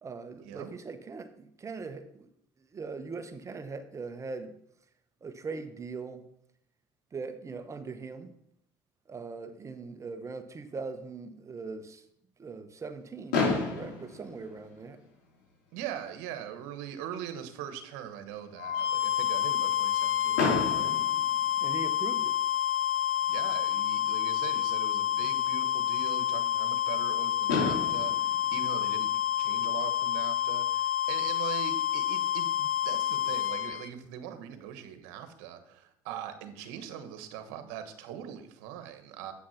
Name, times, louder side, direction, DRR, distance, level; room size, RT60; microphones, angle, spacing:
voice 1, 0.0-2.3 2.6-4.5 5.2-6.2 7.1-8.3 9.1-12.0 12.4-15.0 21.6-22.3, right 4 dB, 30° right, 9 dB, 1.0 m, -40 dB
Fireworks, 13.3-15.3 16.2-16.3 16.4-16.6 17.0-17.1 20.3-22.2 23.9-24.0 27.0-27.1 27.5-29.8, left 3 dB, 90° left, 4.0 m, -32 dB
voice 2, 15.7-20.9 23.3-29.1 29.4-39.3, right 10 dB, 80° right, 8 dB, 1.2 m, -41 dB
sound 1, 18.6-33.9, left 11 dB, 75° left, 0.6 m, -29 dB
8.3 x 6.2 x 5.7 m, 0.73 s
supercardioid pair, 90°, 11 cm